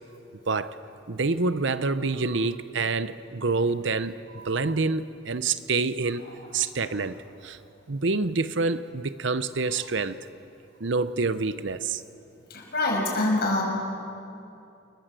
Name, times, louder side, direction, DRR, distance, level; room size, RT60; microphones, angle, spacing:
voice 1, 1.1-6.2 6.5-7.2 7.4-7.6 7.9-10.2 10.8-12.0, right 3 dB, 60° right, 13 dB, 0.8 m, -27 dB
voice 2, 12.5-13.6, left 2 dB, 50° left, 0 dB, 6.2 m, -25 dB
29.0 x 21.0 x 7.6 m, 2.7 s
head